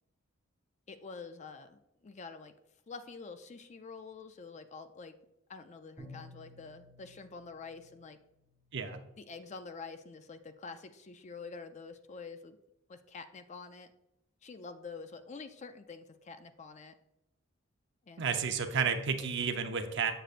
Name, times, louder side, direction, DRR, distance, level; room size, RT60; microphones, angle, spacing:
voice 1, 0.9-2.5 2.9-5.1 5.5-8.2 9.2-12.6 12.9-13.9 14.4-16.9 18.1-18.5, left 4 dB, 35° left, 9 dB, 0.4 m, -47 dB
Bowed string instrument, 6.0-8.8, left 1 dB, 15° left, 1.0 m, -54 dB
voice 2, 18.2-20.1, right 6 dB, 60° right, 6 dB, 0.7 m, -31 dB
7.5 x 6.8 x 2.5 m, 0.87 s
head